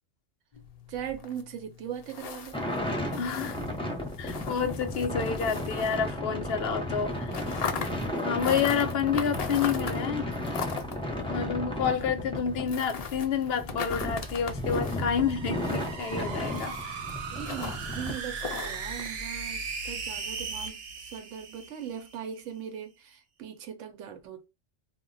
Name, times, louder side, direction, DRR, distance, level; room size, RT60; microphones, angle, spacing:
sound 1, 0.5-6.5 6.8-19.1, left 6 dB, 85° left, 0.3 m, -40 dB
voice 1, 0.9-2.6 17.3-24.5, right 9 dB, 80° right, 1.0 m, -40 dB
sound 2, 2.5-18.1, left 1 dB, 5° left, 0.5 m, -34 dB
voice 2, 3.2-3.6 4.2-7.7 8.2-10.3 11.3-17.0, left 7 dB, 65° left, 0.7 m, -29 dB
sound 3, 14.8-22.2, right 5 dB, 60° right, 0.9 m, -38 dB
2.2 x 2.1 x 3.8 m
omnidirectional pair, 1.3 m